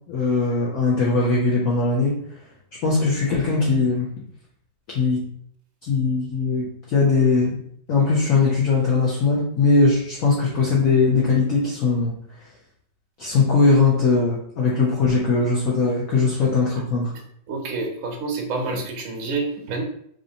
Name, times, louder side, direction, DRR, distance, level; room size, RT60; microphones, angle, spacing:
voice 1, 0.1-2.2 2.8-4.1 4.9-5.3 5.8-7.6 7.9-12.1 13.2-17.1, left 4 dB, 55° left, -4 dB, 1.0 m, -20 dB
voice 2, 17.5-19.8, right 3 dB, 55° right, 0 dB, 0.9 m, -28 dB
5.1 x 3.1 x 2.8 m, 0.66 s
omnidirectional pair, 2.3 m